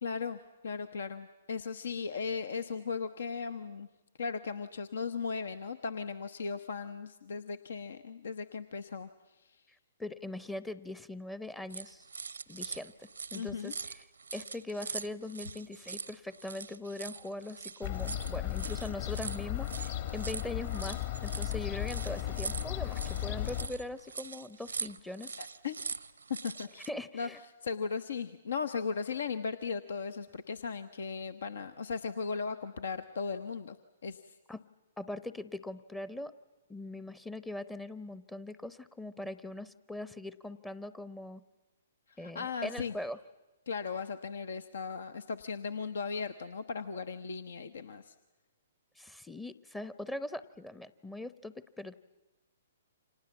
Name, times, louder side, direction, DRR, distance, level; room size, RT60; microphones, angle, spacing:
voice 1, 0.0-3.9 4.2-9.1 9.4-9.6 13.3-13.7 25.4-25.7 26.4-26.9 27.1-27.3 27.6-33.8 34.0-34.3 42.1-42.9 43.7-48.1, left 5 dB, 65° left, 12 dB, 1.0 m, -37 dB
voice 2, 9.7-12.1 12.5-14.0 14.3-25.3 26.9-27.4 34.5-34.6 35.0-36.3 36.7-41.4 42.2-43.2 49.0-51.9, left 2 dB, 5° left, 14 dB, 0.8 m, -41 dB
sound 1, 11.7-26.9, right 5 dB, 75° right, 0.8 m, -43 dB
Fowl / Gull seagull, 17.8-23.7, left 13 dB, 50° left, 2.4 m, -35 dB
29.5 x 26.0 x 7.2 m, 1.1 s
figure-of-eight pair, 120°, 0 cm